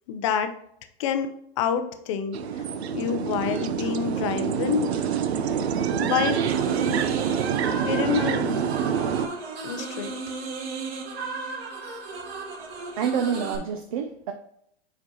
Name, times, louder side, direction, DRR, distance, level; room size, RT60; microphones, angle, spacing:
voice 1, 0.1-0.5 1.0-1.3 1.6-2.7 2.9-4.9 6.0-6.4 7.8-8.6 9.6-10.1, left 8 dB, 30° left, 9 dB, 0.5 m, -27 dB
sound 1, 2.3-9.3, right 7 dB, 90° right, 0.7 m, -26 dB
sound 2, 6.5-13.6, right 4 dB, 65° right, 1.7 m, -35 dB
voice 2, 13.0-14.3, right 7 dB, 35° right, 6 dB, 0.4 m, -27 dB
7.2 x 5.2 x 2.8 m, 0.72 s
supercardioid pair, 165°, 31 cm